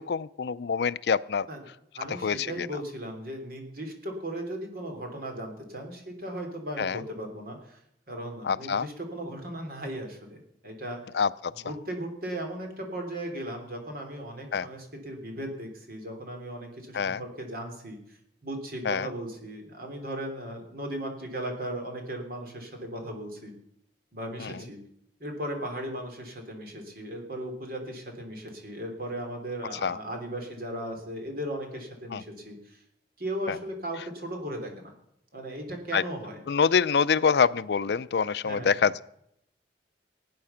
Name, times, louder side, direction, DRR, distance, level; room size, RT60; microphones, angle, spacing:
voice 1, 0.0-1.5 2.2-2.7 6.8-7.0 8.4-8.9 11.1-11.5 14.5-14.7 16.9-17.2 18.8-19.1 24.4-24.5 29.8-30.0 32.1-32.2 33.5-33.6 35.9-36.0 36.5-39.0, left 6 dB, 65° left, 17 dB, 0.4 m, -25 dB
voice 2, 1.9-7.8 8.1-11.0 11.6-23.5 24.1-24.8 25.2-32.8 33.2-34.9 35.3-36.4 38.4-38.9, right 1 dB, 55° right, 3 dB, 3.4 m, -37 dB
18.5 x 9.5 x 5.7 m, 0.75 s
head